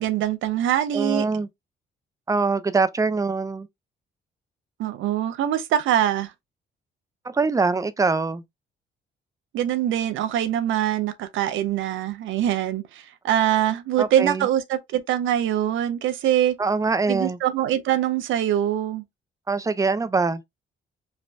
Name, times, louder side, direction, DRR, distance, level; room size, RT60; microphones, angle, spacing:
voice 1, 0.0-1.3 4.8-6.3 9.5-16.5 17.1-19.0, right 11 dB, 80° right, 0.5 m, -23 dB
voice 2, 0.9-1.5 2.3-3.7 7.2-8.4 14.0-14.5 16.6-17.4 19.5-20.4, right 4 dB, 15° right, 0.4 m, -23 dB
3.2 x 2.0 x 2.5 m
cardioid pair, 90°, 20 cm